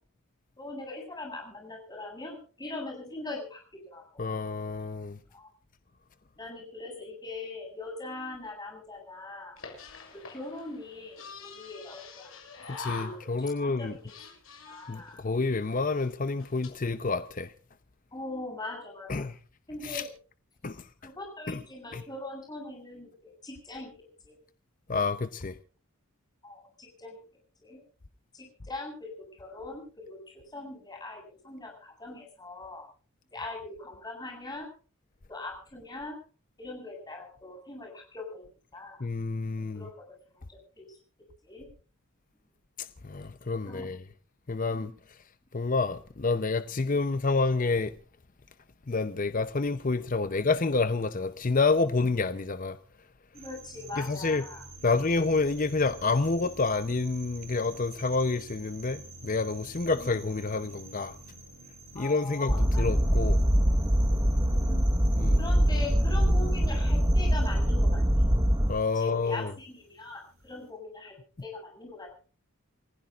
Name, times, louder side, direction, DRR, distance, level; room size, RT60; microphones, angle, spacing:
voice 1, 0.6-4.0 5.3-5.5 6.4-9.5 10.1-12.3 12.7-14.2 14.7-15.2 18.1-19.3 19.7-20.1 21.0-24.4 26.4-27.2 27.6-27.8 28.3-32.9 33.3-34.7 35.3-36.2 36.6-38.4 38.7-39.0 39.7-41.0 41.4-41.7 43.6-43.9 53.3-54.6 59.9-60.2 61.9-62.9 64.4-64.9 65.4-68.3 68.9-72.2, left 2 dB, 20° left, 7.9 m, -41 dB
voice 2, 4.2-5.2 12.7-13.9 14.9-17.5 19.1-19.4 19.8-20.0 20.6-20.9 21.5-21.6 21.9-22.0 24.9-25.6 39.0-39.9 42.8-44.0 44.5-45.2 45.5-47.9 48.9-52.8 54.0-54.4 54.8-61.2 61.9-63.4 65.2-65.4 68.7-69.5, left 3 dB, 40° left, 0.7 m, -28 dB
sound 1, 9.6-13.5 13.8-15.1 15.7-15.8 16.0-16.1 16.4-16.7, left 4 dB, 70° left, 7.1 m, -45 dB
sound 2, 53.3-70.7, right 3 dB, 65° right, 6.4 m, -49 dB
sound 3, 62.5-68.7, equal, 15° right, 1.2 m, -23 dB
29.0 x 16.0 x 2.5 m
head